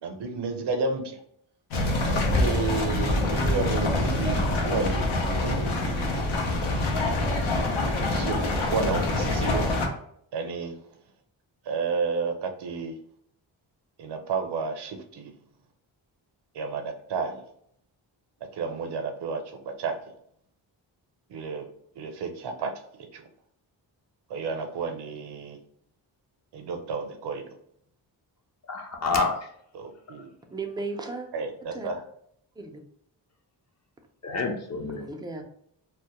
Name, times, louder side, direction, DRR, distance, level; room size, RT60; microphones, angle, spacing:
voice 1, 0.0-1.2 2.1-5.7 8.1-9.6 10.3-10.8 11.7-12.9 14.0-15.3 16.5-17.4 18.5-20.0 21.3-21.6 22.0-22.7 23.1-23.2 24.3-25.6 26.5-27.4 29.7-30.3 31.3-32.0, right 4 dB, 60° right, 5 dB, 0.6 m, -31 dB
sound 1, 1.7-9.9, left 2 dB, 80° left, 0.7 m, -25 dB
voice 2, 28.7-29.5 34.2-35.0, left 4 dB, 35° left, 2 dB, 0.5 m, -28 dB
voice 3, 30.5-31.3 31.7-31.9 32.6-32.8 34.9-35.4, right 3 dB, 10° right, 4 dB, 0.3 m, -35 dB
2.2 x 2.0 x 2.9 m, 0.68 s
cardioid pair, 65°, 47 cm